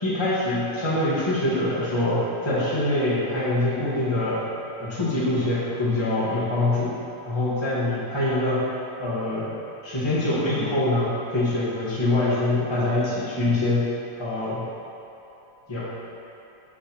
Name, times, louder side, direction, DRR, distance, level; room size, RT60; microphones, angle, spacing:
voice 1, 0.0-4.4 4.8-6.9 7.2-8.7 9.0-9.5 9.8-13.8 14.2-14.7 15.7-15.8, left 2 dB, 15° left, -9 dB, 1.6 m, -24 dB
9.5 x 7.0 x 3.1 m, 2.8 s
omnidirectional pair, 2.2 m